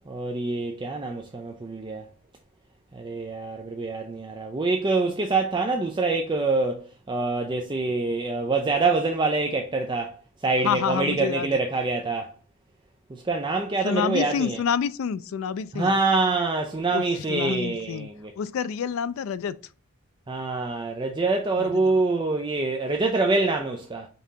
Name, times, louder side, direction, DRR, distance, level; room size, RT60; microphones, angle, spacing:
voice 1, 0.1-2.1 2.9-10.2 10.4-12.3 13.1-14.6 15.7-18.3 20.3-24.1, right 3 dB, 20° right, 0.3 m, -25 dB
voice 2, 10.6-11.6 13.8-15.9 16.9-18.1 18.4-19.6 21.6-22.0, left 7 dB, 70° left, 0.3 m, -28 dB
5.4 x 2.8 x 3.5 m
head